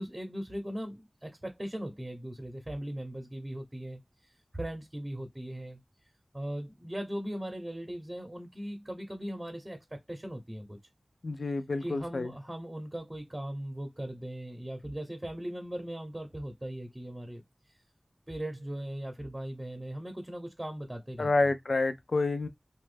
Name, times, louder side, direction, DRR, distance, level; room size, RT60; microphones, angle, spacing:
voice 1, 0.0-4.0 4.5-5.8 6.3-10.8 11.8-17.4 18.3-21.3, right 1 dB, 20° right, 0.8 m, -39 dB
voice 2, 11.2-12.3 21.2-22.5, left 3 dB, 80° left, 0.4 m, -28 dB
3.0 x 2.3 x 3.3 m
wide cardioid pair, 70°, 0 cm